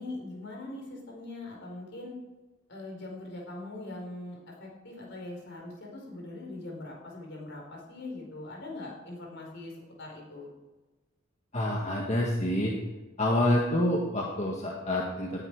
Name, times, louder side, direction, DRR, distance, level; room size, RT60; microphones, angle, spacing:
voice 1, 0.0-2.1 2.7-9.7 10.0-10.5, left 2 dB, 60° left, -1 dB, 4.5 m, -41 dB
voice 2, 11.5-12.7 13.2-15.4, left 1 dB, 35° left, -2 dB, 1.7 m, -27 dB
18.0 x 10.0 x 4.8 m, 1.2 s
head